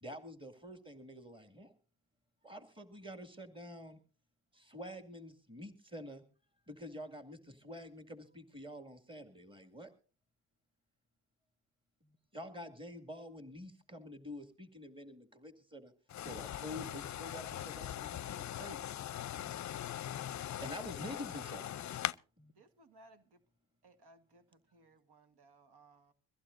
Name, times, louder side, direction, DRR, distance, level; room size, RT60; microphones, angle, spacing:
voice 1, 0.0-1.7 2.4-4.0 4.5-6.2 6.7-9.9 12.0-15.9 16.2-18.8 20.6-21.9, equal, 10° right, 2.2 m, -48 dB
voice 2, 16.1-22.2, left 11 dB, 45° left, 0.6 m, -41 dB
voice 3, 22.6-23.4 23.8-26.1, right 2 dB, 65° right, 1.7 m, -63 dB
22.5 x 15.5 x 2.6 m
cardioid pair, 85°, 42 cm